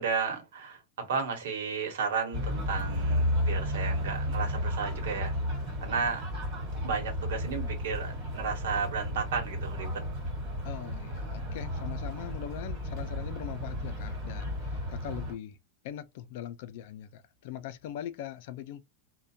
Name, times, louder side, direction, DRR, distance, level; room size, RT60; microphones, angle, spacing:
voice 1, 0.0-5.4 5.8-6.2 6.7-10.0, right 5 dB, 75° right, 1.0 m, -33 dB
sound 1, 2.3-15.3, equal, 30° right, 1.6 m, -33 dB
voice 2, 10.6-15.6 15.8-18.8, left 11 dB, 50° left, 0.4 m, -41 dB
2.4 x 2.2 x 2.6 m
supercardioid pair, 175°, 0 cm